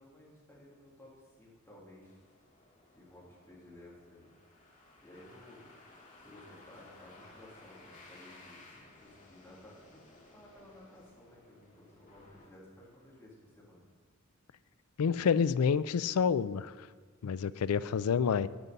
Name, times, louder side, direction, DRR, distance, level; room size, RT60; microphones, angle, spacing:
voice 1, 0.0-2.2 2.9-4.3 4.6-5.7 6.2-13.9 17.7-17.9, left 1 dB, 10° left, -6 dB, 3.1 m, -56 dB
sound 1, 2.0-13.2, left 2 dB, 35° left, 2.2 m, -58 dB
voice 2, 15.0-16.7 17.2-18.5, left 6 dB, 80° left, 17 dB, 0.4 m, -28 dB
9.6 x 9.5 x 5.3 m, 1.4 s
head